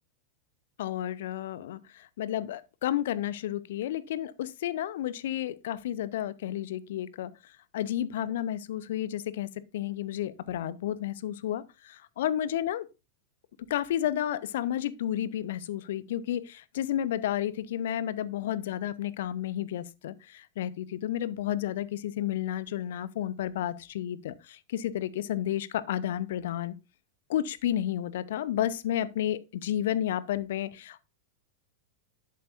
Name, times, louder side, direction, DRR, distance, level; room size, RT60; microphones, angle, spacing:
voice 1, 0.8-7.3 7.7-12.9 13.7-26.7 27.3-31.0, left 11 dB, 55° left, 0.7 m, -31 dB
11.0 x 8.6 x 2.5 m
figure-of-eight pair, 90°, 0 cm